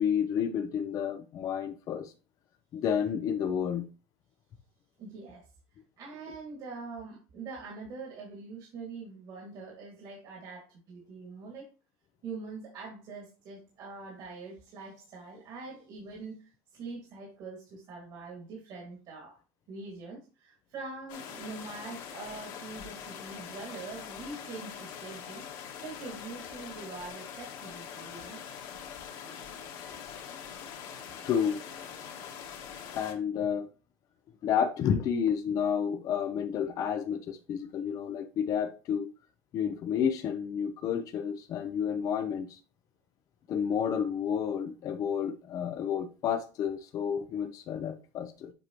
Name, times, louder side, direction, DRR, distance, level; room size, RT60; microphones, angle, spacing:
voice 1, 0.0-2.1 2.7-3.8 31.2-31.6 33.0-33.7 34.4-39.1 39.5-42.6 43.5-48.5, left 8 dB, 45° left, 0.6 m, -30 dB
voice 2, 5.0-5.5 6.0-11.7 12.2-19.4 19.7-28.4, right 4 dB, 55° right, 2.3 m, -44 dB
sound 1, 21.1-33.1, left 8 dB, 60° left, 1.8 m, -43 dB
7.6 x 4.8 x 3.0 m
cardioid pair, 135°, 8 cm